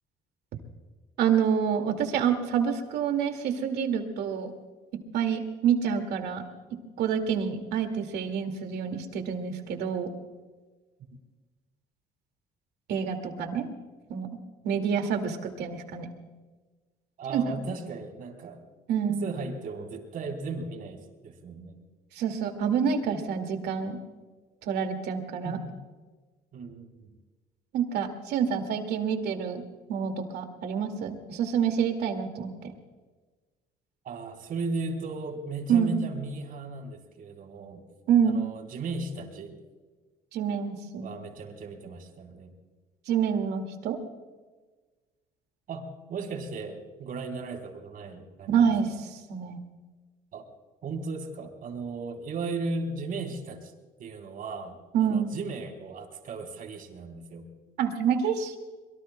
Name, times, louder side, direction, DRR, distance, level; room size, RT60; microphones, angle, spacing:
voice 1, 1.2-4.5 5.1-6.4 7.0-10.1 12.9-13.7 14.1-14.3 14.6-16.1 17.3-17.6 18.9-19.2 22.1-24.0 24.6-25.6 27.7-29.6 29.9-32.7 35.7-36.1 38.1-38.4 40.3-41.1 43.1-44.0 48.5-49.6 54.9-55.4 57.8-58.6, right 7 dB, 75° right, 6 dB, 2.2 m, -27 dB
voice 2, 17.2-18.6 19.1-21.8 25.4-25.8 26.5-27.1 34.0-37.8 38.2-39.6 41.0-42.5 45.7-49.0 50.3-50.5 50.8-53.7 54.0-57.5, right 3 dB, 55° right, 3 dB, 3.8 m, -36 dB
24.0 x 22.5 x 2.2 m, 1.3 s
cardioid pair, 110°, 17 cm